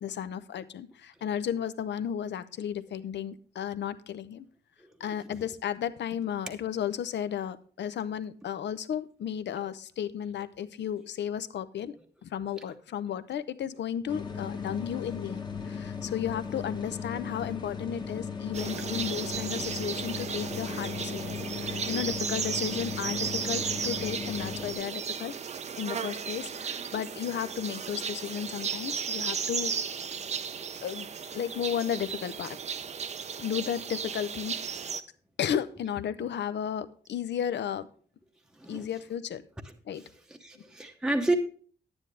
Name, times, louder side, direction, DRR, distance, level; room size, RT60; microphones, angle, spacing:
voice 1, 0.0-4.5 5.0-12.0 12.2-15.4 15.7-25.3 25.7-29.7 30.8-32.6 33.4-34.6 35.4-37.9 38.7-39.4 39.9-40.0 40.6-40.7, left 9 dB, 85° left, 0.7 m, -34 dB
sound 1, 14.1-24.7, left 6 dB, 25° left, 1.1 m, -37 dB
sound 2, 18.5-35.0, right 6 dB, 40° right, 0.5 m, -35 dB
voice 2, 30.2-30.6 38.6-38.9 40.0-41.4, right 2 dB, 5° right, 0.8 m, -32 dB
10.5 x 9.8 x 3.2 m
wide cardioid pair, 165°, 18 cm